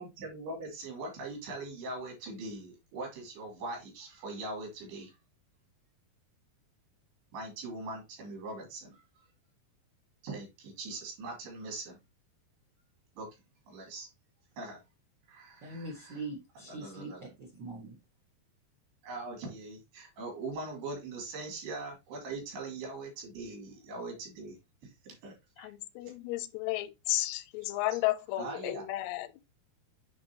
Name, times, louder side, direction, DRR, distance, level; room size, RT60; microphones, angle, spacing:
voice 1, 0.0-5.1 7.3-9.0 10.2-12.0 13.2-13.3 13.7-14.1 14.6-14.8 15.3-16.2 16.7-17.2 19.0-24.6 24.8-25.7 28.4-28.8, right 2 dB, 85° right, 4.8 m, -41 dB
voice 2, 15.6-18.0, right 2 dB, 60° right, 1.1 m, -42 dB
voice 3, 25.6-29.4, left 16 dB, 85° left, 2.7 m, -33 dB
9.4 x 3.7 x 2.9 m
omnidirectional pair, 4.6 m